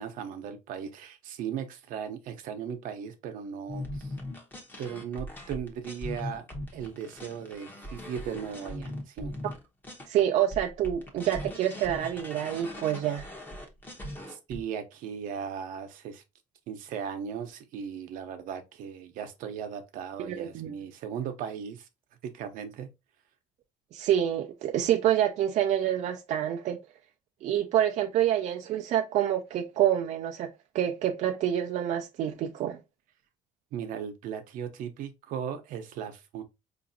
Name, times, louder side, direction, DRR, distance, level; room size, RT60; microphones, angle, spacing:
voice 1, 0.0-4.1 4.8-9.3 14.3-16.2 16.7-21.9 22.2-22.9 33.7-36.4, right 8 dB, 75° right, 0.8 m, -37 dB
sound 1, 3.7-10.2 10.5-14.6, left 1 dB, 15° left, 0.8 m, -40 dB
voice 2, 10.1-13.3 20.2-20.7 23.9-26.8 27.4-32.8, right 11 dB, 55° right, 0.4 m, -27 dB
4.7 x 2.6 x 2.6 m
cardioid pair, 155°, 14 cm